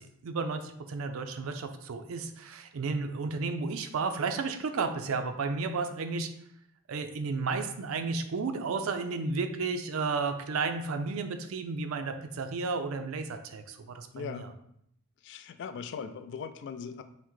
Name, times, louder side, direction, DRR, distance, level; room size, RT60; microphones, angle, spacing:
voice 1, 0.0-6.3 6.9-14.5, right 4 dB, 75° right, 7 dB, 0.4 m, -33 dB
voice 2, 14.1-14.5 15.2-17.0, left 6 dB, 55° left, 9 dB, 0.3 m, -39 dB
5.7 x 2.1 x 3.0 m, 0.72 s
head